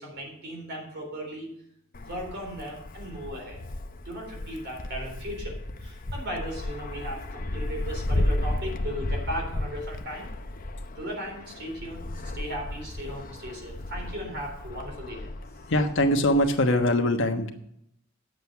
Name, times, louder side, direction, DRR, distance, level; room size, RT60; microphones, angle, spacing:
voice 1, 0.0-1.5 2.0-3.6 4.0-10.3 11.0-12.1 12.3-15.3, equal, 55° right, 1 dB, 3.8 m, -37 dB
Wind, 1.9-16.8, left 1 dB, 45° left, 0.7 m, -34 dB
voice 2, 15.7-17.5, left 1 dB, 65° left, 5 dB, 1.2 m, -22 dB
9.4 x 8.0 x 5.7 m, 0.74 s
head